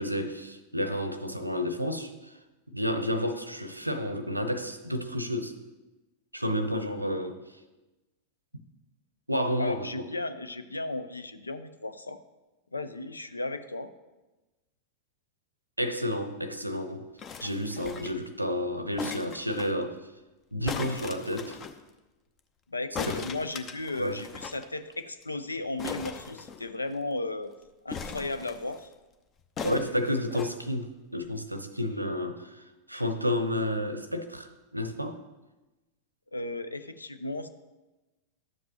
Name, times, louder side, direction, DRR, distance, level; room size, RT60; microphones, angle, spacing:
voice 1, 0.0-2.3 2.7-5.5 6.3-7.4 9.3-10.0 15.8-17.1 17.4-20.0 20.5-21.6 23.1-23.3 24.0-24.2 29.6-35.2, equal, 85° right, 0.6 m, -31 dB
voice 2, 9.3-12.2 12.7-13.9 22.7-27.5 27.8-28.9 36.3-37.5, left 2 dB, 80° left, 0.5 m, -35 dB
sound 1, 17.2-18.3 19.0-19.7 20.6-21.8 22.9-24.6 24.9-25.0 25.2-25.4 25.8-27.0 27.9-28.8 29.6-30.5 31.3-31.4, left 6 dB, 30° left, 0.7 m, -39 dB
12.0 x 7.4 x 2.9 m
figure-of-eight pair, 90°, 0 cm